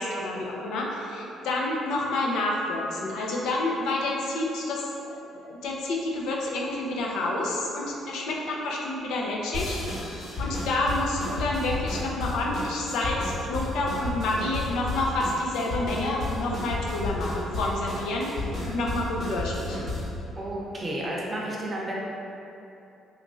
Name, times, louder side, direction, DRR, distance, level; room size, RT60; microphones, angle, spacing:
voice 1, 0.0-9.8 10.1-18.3 18.7-19.9, left 2 dB, 85° left, -2 dB, 0.5 m, -29 dB
sound 1, 9.5-20.2, left 2 dB, 45° left, 1.2 m, -32 dB
voice 2, 20.4-21.9, right 1 dB, 25° right, -4 dB, 0.6 m, -32 dB
2.9 x 2.5 x 3.6 m, 2.8 s
cardioid pair, 110°, 0 cm